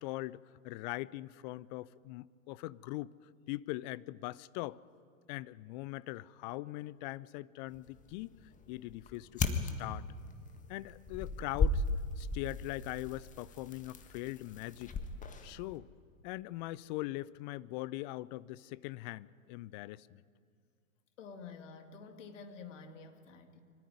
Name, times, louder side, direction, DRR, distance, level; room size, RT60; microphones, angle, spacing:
voice 1, 0.0-3.1 3.5-4.8 5.3-8.3 8.7-10.1 10.7-11.8 12.2-14.9 15.4-15.9 16.2-20.2, left 18 dB, 35° left, 20 dB, 0.5 m, -41 dB
sound 1, 7.7-15.8, left 3 dB, 20° left, 1.7 m, -37 dB
voice 2, 21.2-23.6, left 5 dB, 65° left, 6 dB, 2.5 m, -49 dB
24.5 x 14.0 x 9.5 m, 2.2 s
hypercardioid pair, 105°, 40 cm